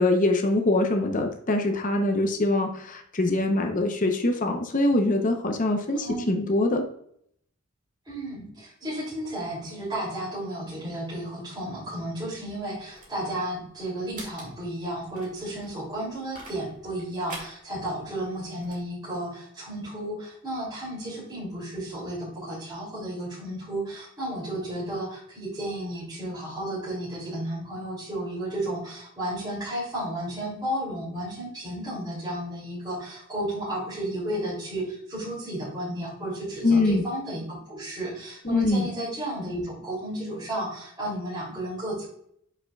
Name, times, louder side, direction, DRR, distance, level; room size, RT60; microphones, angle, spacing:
voice 1, 0.0-6.9 36.6-37.0 38.4-38.9, left 2 dB, 40° left, 4 dB, 0.8 m, -23 dB
voice 2, 8.0-42.0, right 1 dB, 20° right, -9 dB, 2.9 m, -33 dB
sound 1, 12.3-18.9, right 2 dB, 40° right, 2.3 m, -47 dB
8.3 x 5.7 x 2.4 m, 0.68 s
head